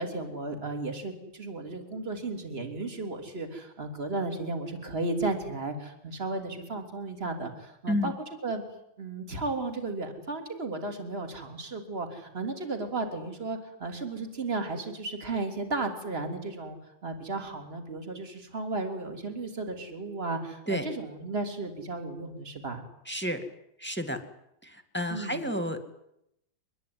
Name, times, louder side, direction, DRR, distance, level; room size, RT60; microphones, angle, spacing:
voice 1, 0.0-8.1 8.4-8.6 9.0-16.8 17.0-22.8 25.1-25.5, right 3 dB, 30° right, 5 dB, 3.5 m, -34 dB
voice 2, 23.1-23.4 23.8-24.2 24.6-25.8, equal, 5° left, 8 dB, 2.1 m, -31 dB
24.5 x 21.0 x 9.6 m, 0.80 s
omnidirectional pair, 2.2 m